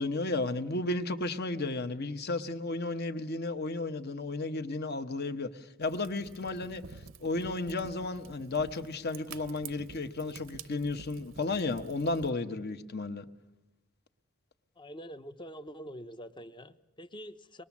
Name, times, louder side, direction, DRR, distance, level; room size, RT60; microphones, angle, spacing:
voice 1, 0.0-6.8 7.2-13.2, left 2 dB, 50° left, 1.1 m, -33 dB
Fire, 5.8-12.3, right 5 dB, 70° right, 0.7 m, -49 dB
voice 2, 14.8-17.6, equal, 25° left, 0.7 m, -45 dB
24.0 x 20.5 x 7.3 m
head